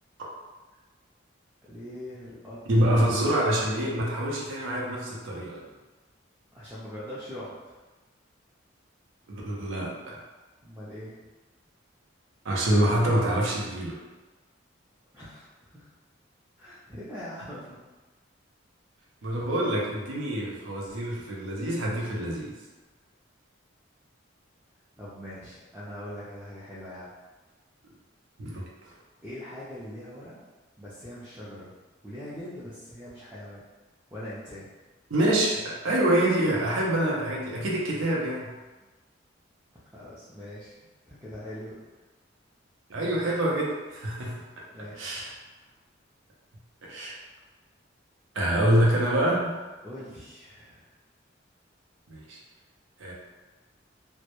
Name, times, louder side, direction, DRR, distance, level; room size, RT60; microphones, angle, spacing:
voice 1, 1.7-2.6 3.2-3.3 6.5-7.8 10.6-11.2 15.1-15.9 16.6-17.8 25.0-27.1 29.2-30.4 30.8-31.7 32.0-33.6 34.1-34.7 39.9-40.8 41.1-41.8 44.7-45.2 49.8-50.9, left 1 dB, 10° right, -10 dB, 0.4 m, -42 dB
voice 2, 2.7-5.6 9.3-10.2 12.4-14.0 19.2-22.5 28.4-28.9 35.1-38.5 42.9-44.4 45.0-45.3 46.8-47.2 48.3-49.6 52.1-52.4 53.0-53.1, right 1 dB, 80° right, -3 dB, 0.5 m, -26 dB
2.1 x 2.0 x 2.8 m, 1.2 s
head